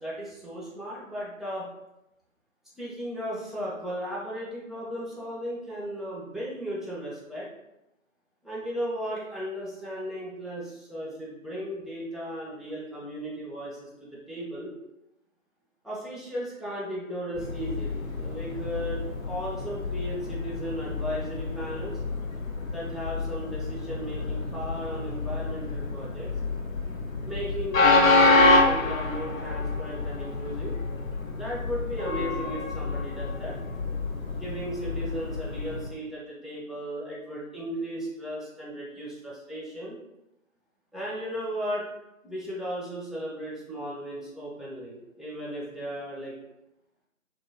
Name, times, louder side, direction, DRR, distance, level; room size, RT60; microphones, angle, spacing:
voice 1, 0.0-1.7 2.8-7.5 8.4-14.7 15.8-22.0 22.7-26.3 27.2-30.7 31.3-33.6 34.4-40.0 40.9-41.9 42.2-46.3, equal, ahead, -7 dB, 0.4 m, -36 dB
Train, 17.3-35.9, left 3 dB, 75° left, 0.6 m, -27 dB
2.6 x 2.0 x 2.6 m, 0.90 s
figure-of-eight pair, 165°, 41 cm